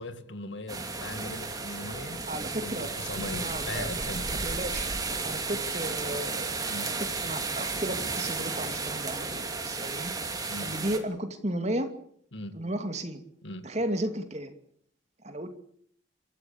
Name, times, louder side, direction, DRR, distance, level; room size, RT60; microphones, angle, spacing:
voice 1, 0.0-2.2 2.6-4.3 6.7-6.9 10.5-10.7 12.3-12.6 13.4-13.7, left 1 dB, 70° left, 11 dB, 2.1 m, -39 dB
sound 1, 0.7-11.0, right 4 dB, 20° right, 2.7 m, -33 dB
voice 2, 2.3-2.9 3.3-3.9 4.3-4.9 5.2-10.1 10.6-11.9 12.5-13.2 13.6-14.5 15.2-15.5, right 1 dB, 35° right, 7 dB, 2.6 m, -34 dB
27.5 x 14.0 x 8.7 m, 0.64 s
head